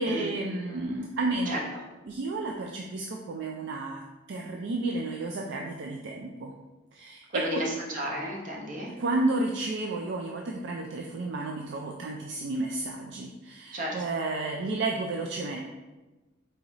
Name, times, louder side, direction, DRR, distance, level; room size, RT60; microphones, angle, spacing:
voice 1, 0.0-1.6 2.1-4.0 4.3-6.5 6.9-7.6 9.0-15.6, right 2 dB, 65° right, 0 dB, 0.4 m, -31 dB
voice 2, 7.3-8.9 13.7-14.1, equal, 45° right, -2 dB, 0.9 m, -32 dB
4.0 x 3.9 x 3.0 m, 1.1 s
head